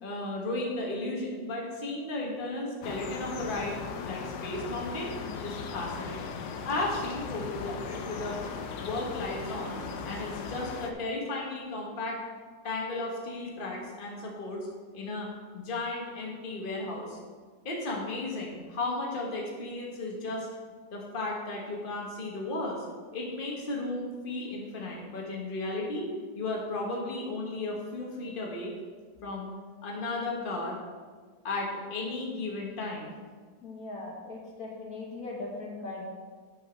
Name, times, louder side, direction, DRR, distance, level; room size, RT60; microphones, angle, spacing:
voice 1, 0.0-5.1 5.4-8.4 8.8-12.3 12.6-14.7 14.9-17.2 17.6-20.5 20.9-22.9 23.1-28.7 29.2-29.5 29.8-30.8 31.4-33.2, left 2 dB, 35° left, -2 dB, 1.5 m, -34 dB
sound 1, 2.8-10.9, left 5 dB, 85° left, 1.4 m, -38 dB
voice 2, 33.6-36.0, left 3 dB, 60° left, -2 dB, 1.8 m, -39 dB
8.6 x 6.3 x 5.1 m, 1.5 s
omnidirectional pair, 1.7 m